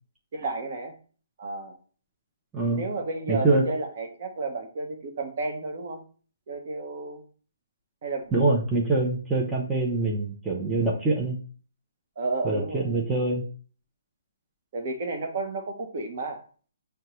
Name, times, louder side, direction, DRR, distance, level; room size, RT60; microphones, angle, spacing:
voice 1, 0.3-0.9 1.4-1.7 2.7-6.0 6.5-7.2 8.0-8.3 12.2-13.0 14.7-16.4, right 3 dB, 45° right, 3 dB, 0.9 m, -32 dB
voice 2, 3.3-3.6 8.3-11.4 12.4-13.4, right 2 dB, 5° right, -4 dB, 0.6 m, -24 dB
6.3 x 2.2 x 2.9 m, 0.41 s
hypercardioid pair, 160°, 0 cm